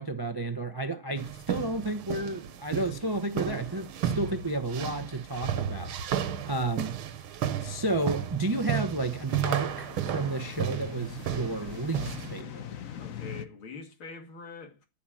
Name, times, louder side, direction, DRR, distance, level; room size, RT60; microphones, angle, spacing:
voice 1, 0.0-5.9 6.4-7.0 7.6-12.7, right 2 dB, 40° right, 0.3 m, -32 dB
sound 1, 1.2-12.4, right 9 dB, 85° right, 1.9 m, -33 dB
sound 2, 8.3-13.5, left 9 dB, 50° left, 1.1 m, -42 dB
voice 2, 13.0-14.9, left 4 dB, 75° left, 3.1 m, -44 dB
14.5 x 5.9 x 9.0 m
omnidirectional pair, 2.3 m